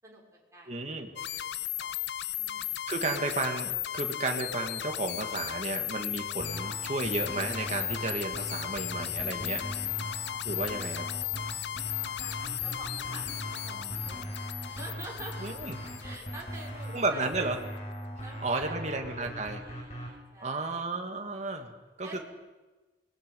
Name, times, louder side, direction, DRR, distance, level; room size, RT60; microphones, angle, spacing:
voice 1, 0.0-1.5 1.8-2.0 2.3-2.9 6.5-6.8 10.8-11.6 12.2-15.6 16.0-17.5 18.2-20.8 22.0-22.2, right 2 dB, 20° right, -3 dB, 6.0 m, -48 dB
voice 2, 0.7-1.1 2.9-9.6 10.4-11.1 15.4-15.8 16.9-17.6 18.4-19.6 20.4-21.7 22.0-22.2, right 2 dB, 40° right, 3 dB, 2.4 m, -33 dB
sound 1, 1.2-17.0, left 12 dB, 70° left, 0.6 m, -36 dB
sound 2, 6.4-20.1, right 1 dB, 40° left, 6.3 m, -40 dB
sound 3, 7.0-16.2, equal, 10° left, 2.5 m, -52 dB
27.5 x 21.0 x 5.6 m, 1.2 s
head